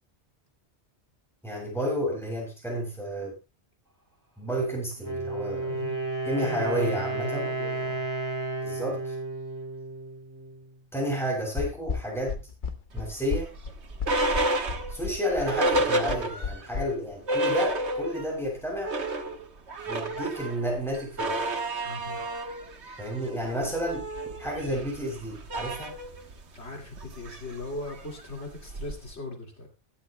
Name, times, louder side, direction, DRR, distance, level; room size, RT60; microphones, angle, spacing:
voice 1, 1.4-3.3 4.4-5.8 6.2-7.5 8.6-9.1 10.9-12.4 12.9-13.5 14.9-18.9 19.9-21.4 23.0-24.1 24.4-25.9, equal, ahead, -2 dB, 7.9 m, -31 dB
Wind instrument woodwind instrument, 4.9-10.7, right 2 dB, 15° right, 3.7 m, -32 dB
voice 2, 5.7-6.0 6.4-8.0 21.8-22.2 26.5-29.7, left 2 dB, 80° left, 0 dB, 2.7 m, -38 dB
sound 1, 11.6-16.8, left 5 dB, 50° left, 1.2 m, -33 dB
sound 2, 13.0-16.7 17.0-17.1 17.3-18.4 18.7-29.1, right 1 dB, 75° right, 1.6 m, -31 dB
22.0 x 11.5 x 2.2 m, 0.28 s
omnidirectional pair, 1.1 m